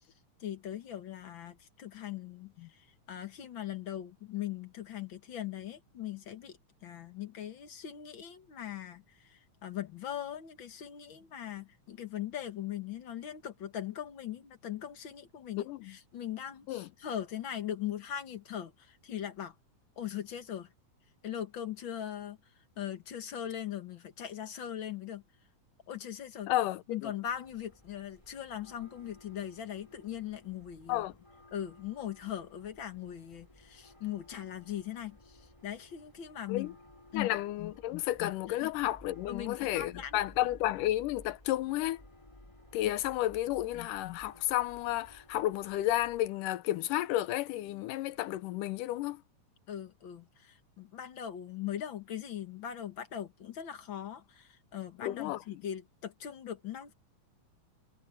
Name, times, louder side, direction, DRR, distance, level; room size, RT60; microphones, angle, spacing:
voice 1, 0.4-19.5 20.0-20.7 21.2-22.4 22.8-25.2 25.9-26.5 26.9-31.0 31.5-36.7 37.1-37.3 38.5-38.7 39.3-40.2 49.7-56.9, left 10 dB, 50° left, 1.7 m, -40 dB
voice 2, 15.6-15.9 16.7-16.9 26.5-27.1 30.9-31.2 36.5-36.7 37.1-42.0 42.7-49.2 55.0-55.4, left 14 dB, 90° left, 2.3 m, -32 dB
sound 1, 27.2-46.3, left 1 dB, 10° left, 3.9 m, -57 dB
omnidirectional pair, 3.7 m